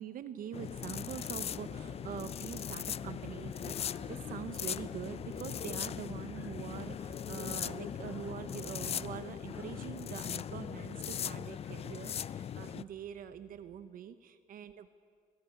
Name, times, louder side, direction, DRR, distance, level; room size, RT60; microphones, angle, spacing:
voice 1, 0.0-14.9, right 9 dB, 55° right, 12 dB, 0.9 m, -44 dB
sound 1, 0.5-12.8, left 9 dB, 35° left, 0.4 m, -39 dB
sound 2, 0.7-13.9, right 4 dB, 35° right, 1.2 m, -54 dB
Laughter, 2.9-13.2, right 1 dB, 10° right, 4.5 m, -64 dB
24.0 x 14.0 x 9.8 m, 2.2 s
cardioid pair, 110°, 17 cm